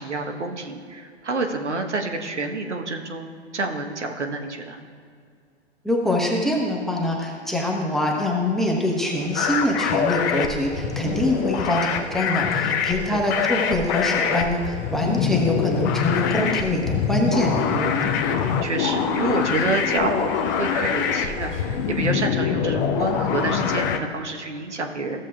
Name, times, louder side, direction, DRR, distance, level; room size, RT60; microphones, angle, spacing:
voice 1, 0.0-4.8 13.1-13.2 18.6-25.3, right 3 dB, 80° right, 3 dB, 1.2 m, -28 dB
voice 2, 5.8-18.0, left 1 dB, ahead, -1 dB, 1.0 m, -24 dB
sound 1, 9.0-22.3, left 3 dB, 85° left, 1.4 m, -38 dB
sound 2, 9.3-24.0, left 7 dB, 20° left, 0.3 m, -24 dB
15.0 x 7.2 x 2.3 m, 2.2 s
figure-of-eight pair, 110°, 34 cm